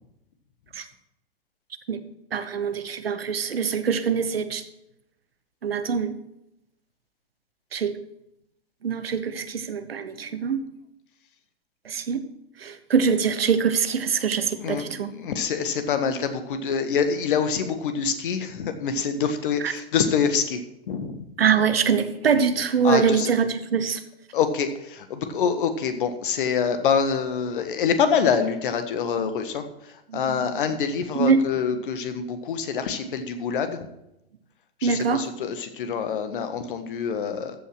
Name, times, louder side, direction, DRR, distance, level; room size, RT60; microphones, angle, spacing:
voice 1, 2.3-4.6 5.6-6.1 7.7-7.9 8.8-10.6 11.8-12.2 12.6-15.1 19.6-19.7 21.4-24.0 29.2-29.3 30.1-30.6 31.1-31.4 31.7-31.8 34.8-35.3, right 6 dB, 75° right, 11 dB, 1.0 m, -24 dB
voice 2, 14.3-20.6 20.9-21.2 22.8-23.3 24.3-29.6 30.1-33.9 34.8-37.5, left 6 dB, 60° left, 9 dB, 1.5 m, -26 dB
14.5 x 5.7 x 6.0 m, 0.86 s
figure-of-eight pair, 105°, 30 cm